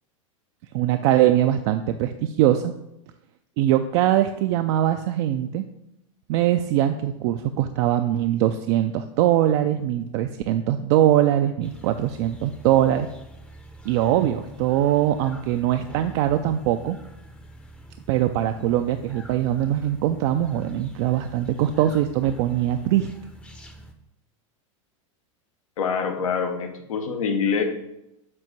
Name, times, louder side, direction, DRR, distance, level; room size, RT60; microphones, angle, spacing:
voice 1, 0.7-2.7 3.6-5.6 6.3-13.1 13.8-17.0 18.1-23.1, right 12 dB, 55° right, 8 dB, 0.4 m, -22 dB
sound 1, 11.6-23.9, equal, 5° left, 0.6 m, -45 dB
voice 2, 25.8-27.6, left 6 dB, 85° left, 5 dB, 1.0 m, -25 dB
7.5 x 2.6 x 5.8 m, 0.87 s
hypercardioid pair, 115°, 17 cm